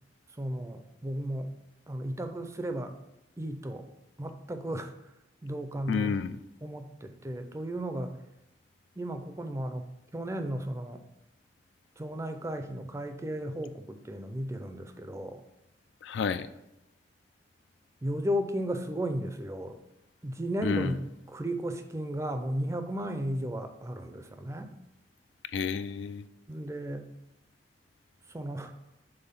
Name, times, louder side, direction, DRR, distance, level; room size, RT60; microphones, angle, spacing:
voice 1, 0.4-1.5 1.9-2.9 3.4-3.9 4.2-4.9 5.4-6.1 6.6-8.1 9.0-9.9 10.1-11.0 12.0-15.4 18.0-19.8 20.2-21.0 21.3-24.7 26.5-27.1 28.3-28.7, equal, 15° right, 8 dB, 0.4 m, -34 dB
voice 2, 5.9-6.3 16.0-16.5 20.6-21.0 25.5-26.2, left 6 dB, 80° left, 12 dB, 0.3 m, -30 dB
5.5 x 3.9 x 5.7 m, 0.87 s
head